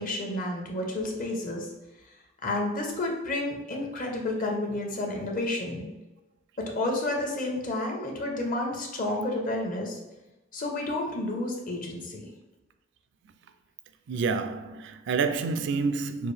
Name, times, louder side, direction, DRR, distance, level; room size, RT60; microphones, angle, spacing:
voice 1, 0.0-1.7 2.4-5.9 6.6-10.0 10.5-12.3, left 2 dB, 45° left, 0.9 m, -30 dB
voice 2, 14.1-16.3, right 4 dB, 65° right, 0.4 m, -28 dB
5.7 x 2.6 x 3.3 m
head